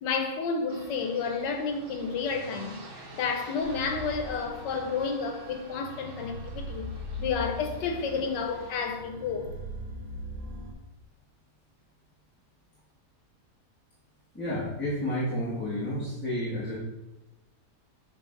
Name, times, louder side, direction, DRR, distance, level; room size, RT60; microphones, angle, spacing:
voice 1, 0.0-6.9 7.2-9.5, left 5 dB, 85° left, 1.4 m, -31 dB
sound 1, 0.7-8.9, right 2 dB, 45° right, 0.8 m, -49 dB
sound 2, 3.6-10.7, left 1 dB, 90° right, 1.6 m, -40 dB
voice 2, 14.3-16.8, left 1 dB, 5° left, 1.3 m, -31 dB
6.8 x 3.8 x 3.8 m
omnidirectional pair, 1.8 m